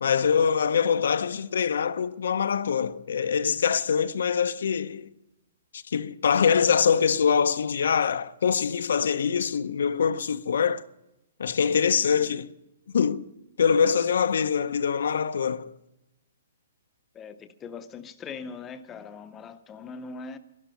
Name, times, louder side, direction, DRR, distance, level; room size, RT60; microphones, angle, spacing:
voice 1, 0.0-5.1 5.7-10.8 11.4-12.5 12.9-13.2 13.6-15.7, left 6 dB, 75° left, 0.7 m, -24 dB
voice 2, 17.1-20.4, left 5 dB, 15° left, 0.7 m, -41 dB
12.0 x 11.5 x 9.0 m
hypercardioid pair, 165°, 0 cm